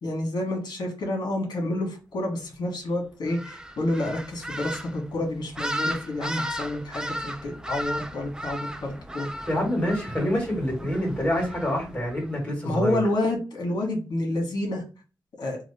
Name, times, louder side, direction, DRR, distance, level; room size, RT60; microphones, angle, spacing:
voice 1, 0.0-9.3 12.6-14.8 15.4-15.6, left 1 dB, 75° left, 1 dB, 1.4 m, -29 dB
sound 1, 3.3-12.3, equal, 10° right, 0.4 m, -35 dB
voice 2, 9.5-13.0, equal, 20° left, -2 dB, 1.9 m, -26 dB
3.0 x 2.4 x 3.3 m, 0.33 s
wide cardioid pair, 105°, 7 cm